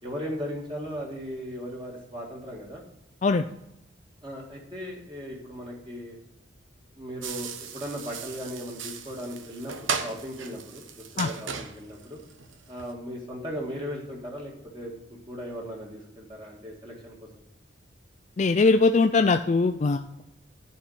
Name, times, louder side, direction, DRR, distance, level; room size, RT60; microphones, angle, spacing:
voice 1, 0.0-2.8 4.2-6.2 6.9-12.2 12.7-14.9 15.3-17.4, equal, 25° right, -2 dB, 1.8 m, -37 dB
sound 1, 7.2-12.9, right 6 dB, 80° right, 0.9 m, -36 dB
voice 2, 18.4-20.2, left 4 dB, 35° left, 7 dB, 0.3 m, -21 dB
10.5 x 4.4 x 6.7 m, 0.85 s
head